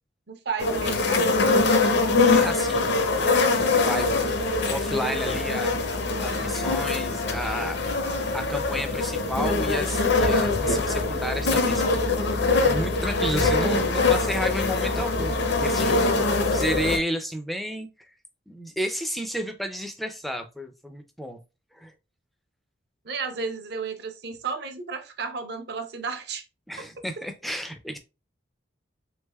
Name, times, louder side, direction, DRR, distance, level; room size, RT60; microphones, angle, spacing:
voice 1, 0.3-1.5 6.2-6.8 23.0-26.4, right 5 dB, 55° right, 7 dB, 0.6 m, -33 dB
sound 1, 0.6-17.0, left 3 dB, 60° left, 0.6 m, -23 dB
voice 2, 2.2-4.4 4.7-5.7 6.2-7.8 8.3-17.9 18.5-21.4 21.7-21.9 26.7-28.0, equal, ahead, 6 dB, 0.3 m, -32 dB
3.3 x 3.3 x 2.2 m, 0.28 s
head